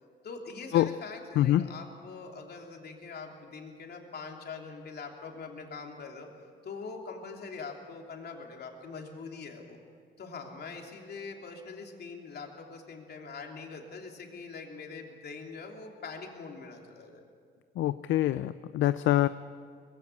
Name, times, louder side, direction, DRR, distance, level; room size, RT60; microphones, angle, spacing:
voice 1, 0.2-6.3 6.6-9.8 10.2-17.2 18.8-18.9, left 4 dB, 55° left, 2 dB, 3.1 m, -43 dB
voice 2, 1.4-1.7 17.8-19.3, left 13 dB, 75° left, 14 dB, 0.5 m, -25 dB
21.0 x 15.5 x 8.3 m, 2.1 s
cardioid pair, 90°, 20 cm